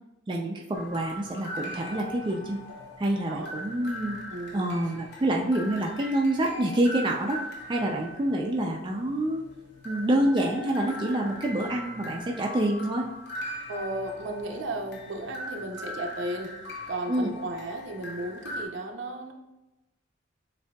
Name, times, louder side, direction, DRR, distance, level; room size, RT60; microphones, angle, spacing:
voice 1, 0.3-2.6 3.0-4.2 4.5-7.4 7.7-9.4 9.8-13.1 17.1-17.3, right 1 dB, 25° right, -1 dB, 0.4 m, -27 dB
sound 1, 0.7-18.7, equal, 55° left, 0.7 m, -40 dB
voice 2, 4.3-4.8 13.7-16.5 16.9-19.3, right 1 dB, 65° right, 3 dB, 0.6 m, -34 dB
7.1 x 2.7 x 2.3 m, 0.97 s
head